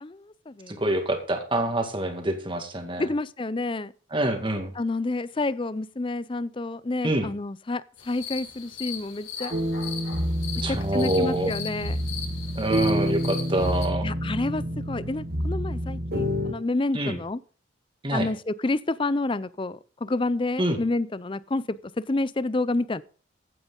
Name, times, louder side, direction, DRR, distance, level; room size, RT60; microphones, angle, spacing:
voice 1, 0.0-0.8 3.0-3.9 4.8-9.5 10.7-12.0 14.0-17.4 18.1-23.0, left 2 dB, 25° left, 0.5 m, -29 dB
voice 2, 0.7-3.1 4.1-4.7 7.0-7.3 10.6-11.5 12.6-14.1 16.9-17.2 18.0-18.3 20.6-20.8, right 1 dB, 25° right, 2.0 m, -26 dB
sound 1, 8.0-13.9, left 7 dB, 85° left, 6.0 m, -38 dB
sound 2, 9.5-16.5, equal, 45° right, 1.8 m, -28 dB
15.5 x 8.9 x 3.9 m
head